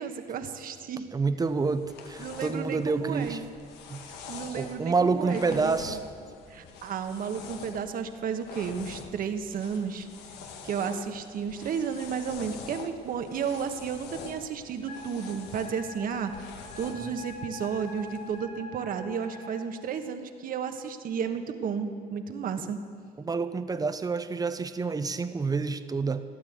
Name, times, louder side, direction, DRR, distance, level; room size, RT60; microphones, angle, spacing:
voice 1, 0.0-1.1 2.2-3.4 4.1-6.0 6.5-10.1 10.6-16.3 16.8-22.8, right 6 dB, 55° right, 7 dB, 1.3 m, -33 dB
voice 2, 1.1-3.4 3.9-4.0 4.5-6.0 23.2-26.2, right 4 dB, 20° right, 11 dB, 0.8 m, -28 dB
sound 1, 1.4-18.4, left 6 dB, 85° left, 1.5 m, -46 dB
Wind instrument woodwind instrument, 14.9-19.6, left 1 dB, 60° left, 4.7 m, -45 dB
16.5 x 9.6 x 8.1 m, 2.3 s
cardioid pair, 110°, 17 cm